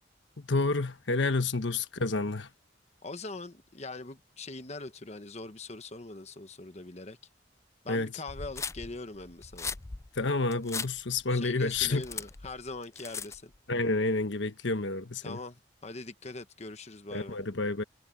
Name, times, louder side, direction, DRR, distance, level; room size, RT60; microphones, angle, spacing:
voice 1, 0.4-2.5 7.9-8.1 10.2-12.0 13.7-15.4 17.1-17.8, left 3 dB, 80° left, 1.3 m, -29 dB
voice 2, 3.0-7.2 7.8-9.8 11.3-13.5 15.2-17.4, left 3 dB, 35° left, 1.1 m, -42 dB
sound 1, 8.3-13.6, left 5 dB, 15° left, 0.4 m, -39 dB
head